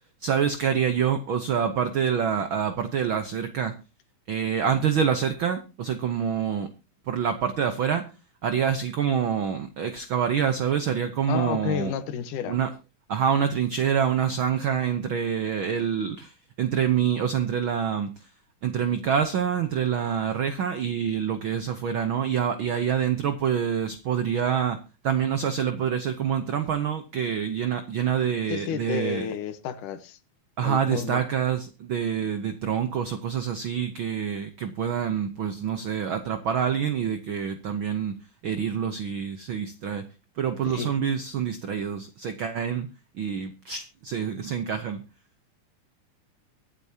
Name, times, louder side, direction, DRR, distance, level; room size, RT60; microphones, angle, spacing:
voice 1, 0.2-3.7 4.3-6.7 7.1-8.1 8.4-11.9 12.5-12.7 13.1-18.3 18.6-29.3 30.6-38.2 38.4-40.0 40.4-42.9 43.1-45.0, right 8 dB, 75° right, 1.1 m, -26 dB
voice 2, 11.3-12.6 28.5-30.2 30.6-31.2 40.7-40.9, left 8 dB, 85° left, 2.6 m, -31 dB
23.5 x 8.4 x 2.8 m
omnidirectional pair, 3.6 m